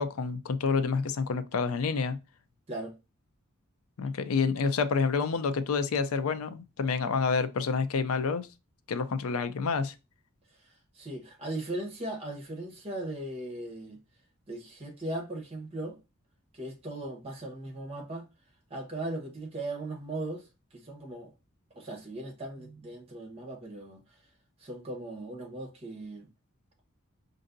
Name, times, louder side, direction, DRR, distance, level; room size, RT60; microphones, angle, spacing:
voice 1, 0.0-2.2 4.0-8.5 8.9-9.9, left 5 dB, 80° left, 0.4 m, -28 dB
voice 2, 10.9-14.0 14.5-16.0 16.5-18.3 18.7-20.5 20.7-21.3 21.7-24.0 24.6-26.3, right 1 dB, 30° right, 1.0 m, -38 dB
5.2 x 2.6 x 2.5 m
head